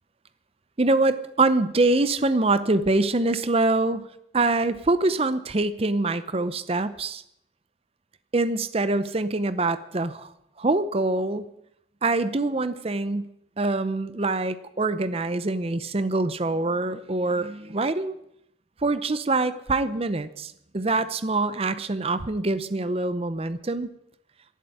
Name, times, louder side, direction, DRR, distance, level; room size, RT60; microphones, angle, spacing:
voice 1, 0.8-4.1 4.3-7.2 8.3-10.3 10.6-11.5 12.0-13.3 13.6-18.2 18.8-23.9, right 2 dB, 30° right, 13 dB, 0.6 m, -24 dB
11.5 x 11.0 x 9.7 m, 0.77 s
head